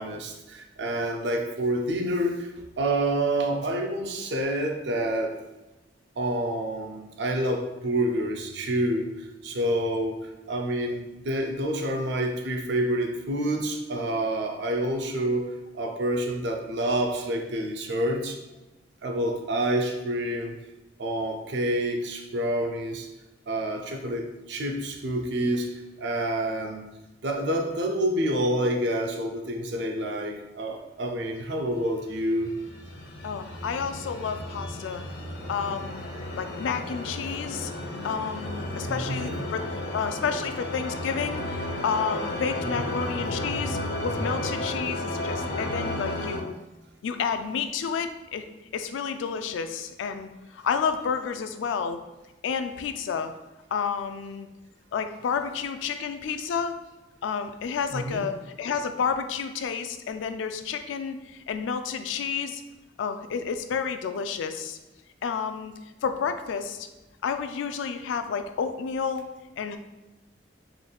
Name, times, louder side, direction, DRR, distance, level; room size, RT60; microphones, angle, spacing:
voice 1, 0.0-2.5 2.8-5.4 6.2-9.1 9.4-10.2 10.5-15.5 15.7-18.4 19.0-20.6 21.0-23.1 23.5-25.7 26.0-26.9 27.2-32.5 38.9-39.4 42.8-42.9 57.9-58.3, right 1 dB, 65° right, 3 dB, 0.5 m, -28 dB
sound 1, 32.0-46.4, left 1 dB, 60° left, 0.7 m, -33 dB
voice 2, 33.2-35.0 35.5-36.0 36.3-37.7 38.0-46.5 47.0-48.5 48.7-52.0 52.4-53.3 53.7-54.5 54.9-56.7 57.2-62.6 63.0-64.8 65.2-65.7 66.0-66.9 67.2-69.2 69.6-69.8, left 6 dB, 80° left, 8 dB, 0.3 m, -30 dB
3.8 x 3.4 x 2.3 m, 1.0 s
head